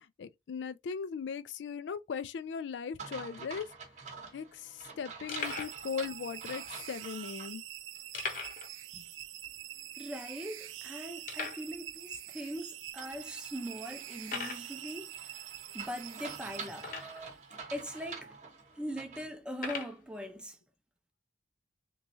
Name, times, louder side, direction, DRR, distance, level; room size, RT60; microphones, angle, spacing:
voice 1, 0.0-3.7 4.3-7.6 8.9-9.0, left 6 dB, 70° left, 0.3 m, -39 dB
sound 1, 3.0-7.5 7.9-8.0 13.0-19.3, right 5 dB, 35° right, 0.9 m, -47 dB
sound 2, 3.8-3.9 4.1-4.3 4.8-4.9 5.3-5.8 6.6-6.7 8.1-8.7 9.0-9.1 9.5-9.6 10.2-10.3 11.2-11.7 12.5-12.6 13.2-13.3 14.2-14.7 16.8-17.3 18.1-18.2 19.5-20.0, left 4 dB, 45° left, 0.8 m, -39 dB
sound 3, 5.4-17.3, right 12 dB, 90° right, 0.4 m, -45 dB
voice 2, 10.0-15.4 15.7-16.9 17.7-18.4 18.8-20.6, equal, 5° right, 0.5 m, -41 dB
3.6 x 3.1 x 2.6 m
head